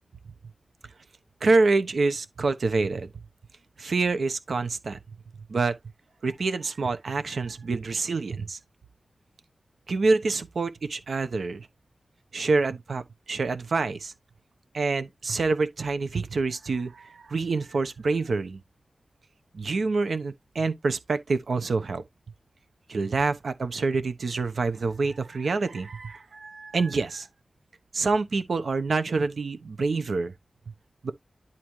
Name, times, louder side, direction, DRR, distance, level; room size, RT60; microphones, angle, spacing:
voice 1, 1.4-3.1 3.8-5.0 5.5-5.8 6.2-8.6 9.9-11.7 12.3-14.1 14.7-18.6 19.5-22.0 22.9-27.3 27.9-30.3 31.0-31.1, right 3 dB, 85° right, 1.0 m, -26 dB
11.0 x 4.3 x 3.2 m
wide cardioid pair, 100°, 0 cm